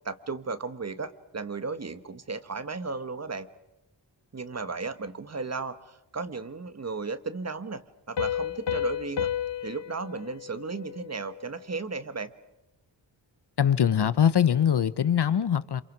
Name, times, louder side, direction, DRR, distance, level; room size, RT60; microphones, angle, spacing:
voice 1, 0.0-3.5 4.3-9.3 9.6-12.3, right 4 dB, 35° right, 12 dB, 1.2 m, -35 dB
Piano, 8.2-11.6, left 10 dB, 80° left, 1.2 m, -32 dB
voice 2, 13.6-15.8, left 9 dB, 65° left, 16 dB, 0.9 m, -22 dB
28.0 x 27.0 x 6.1 m, 0.91 s
wide cardioid pair, 145°, 43 cm